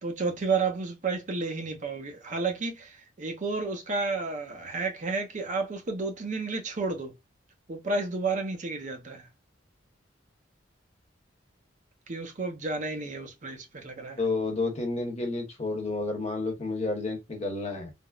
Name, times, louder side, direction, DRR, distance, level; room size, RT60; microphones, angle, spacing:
voice 1, 0.0-7.1 7.7-9.2 12.1-14.2, right 3 dB, 40° right, 0.6 m, -31 dB
voice 2, 14.2-17.9, left 3 dB, 35° left, 0.9 m, -30 dB
3.4 x 2.0 x 2.3 m
head